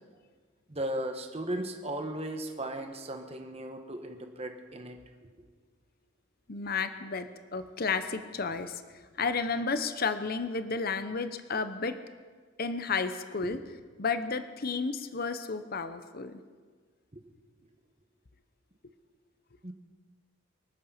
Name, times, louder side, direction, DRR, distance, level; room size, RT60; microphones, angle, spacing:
voice 1, 0.7-5.0 5.4-5.5 13.4-13.6 17.1-17.2 19.6-19.7, right 1 dB, 30° right, 5 dB, 1.3 m, -36 dB
voice 2, 6.5-8.8 9.2-12.0 12.6-13.6 14.0-16.4, left 4 dB, 45° left, 10 dB, 0.8 m, -32 dB
24.5 x 8.5 x 5.7 m, 1.5 s
head